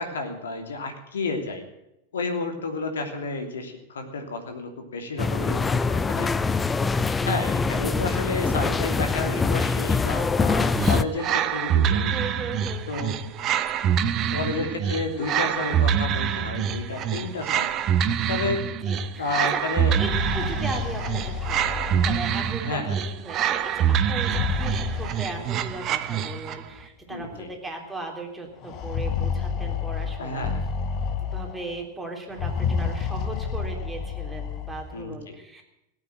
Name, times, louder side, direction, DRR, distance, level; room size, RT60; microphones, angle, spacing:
voice 1, 0.0-1.6 2.1-6.3 7.2-12.1 12.9-13.1 14.3-17.7 18.3-18.6 19.2-20.0 20.4-20.5 22.6-23.0 27.1-27.5 30.2-30.6 34.9-35.4, left 3 dB, 65° left, 5 dB, 3.0 m, -31 dB
sound 1, 5.2-11.0, left 4 dB, 15° left, 0.6 m, -24 dB
sound 2, 10.8-26.7, right 8 dB, 35° right, 1.0 m, -25 dB
voice 2, 12.1-13.1 18.8-19.6 20.0-30.5 31.2-35.6, right 3 dB, 10° right, 1 dB, 3.5 m, -37 dB
sound 3, 19.8-22.7 24.1-25.8 26.8-26.9 27.2-27.3 28.6-31.7 32.3-34.9, left 6 dB, 35° left, 1.5 m, -30 dB
17.5 x 9.1 x 9.1 m, 0.88 s
figure-of-eight pair, 90°, 0 cm